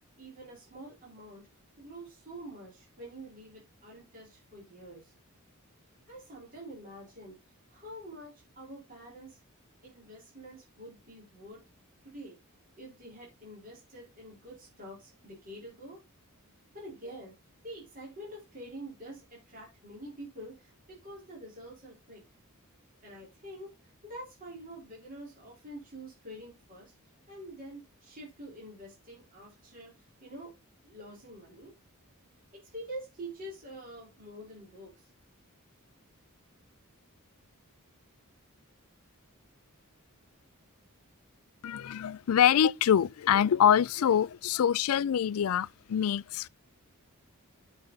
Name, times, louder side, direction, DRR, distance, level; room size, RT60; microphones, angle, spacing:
voice 1, 0.2-1.5 1.8-5.1 6.1-7.4 7.7-9.4 9.8-11.7 12.0-12.4 12.8-16.0 16.7-17.4 17.6-22.2 23.0-26.9 27.3-30.5 30.8-31.7 32.5-35.1, right 1 dB, 40° right, 4.3 m, -46 dB
voice 2, 41.6-46.5, left 9 dB, 70° left, 0.4 m, -25 dB
8.3 x 6.5 x 4.0 m
head